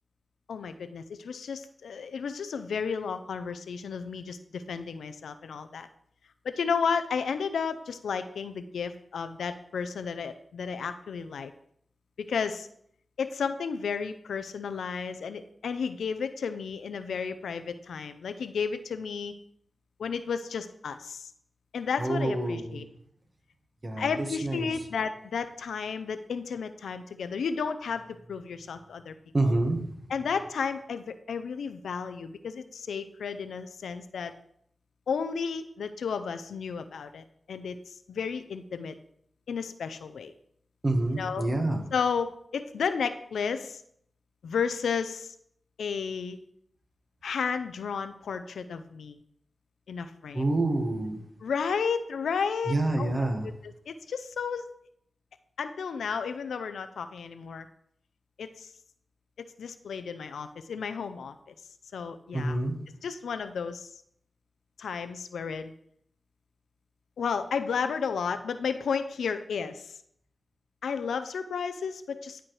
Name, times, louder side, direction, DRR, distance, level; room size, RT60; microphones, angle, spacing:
voice 1, 0.5-5.9 6.4-11.5 12.2-12.7 13.2-19.3 20.0-21.3 21.7-22.8 24.0-29.1 30.1-34.3 35.1-38.9 39.5-40.3 41.2-41.5 41.9-43.8 44.4-45.3 45.8-46.4 47.2-49.2 49.9-50.4 51.4-53.3 53.9-54.6 55.6-57.7 58.4-58.7 59.4-61.3 61.9-62.6 63.0-63.9 64.8-65.7 67.2-69.9 70.8-72.4, left 6 dB, 90° left, 10 dB, 0.4 m, -32 dB
voice 2, 22.0-22.8 23.8-24.7 29.3-30.1 40.8-41.8 50.3-51.2 52.7-53.5 62.3-62.8, right 2 dB, 45° right, 4 dB, 1.4 m, -28 dB
11.0 x 4.5 x 3.2 m, 0.70 s
cardioid pair, 40°, 0 cm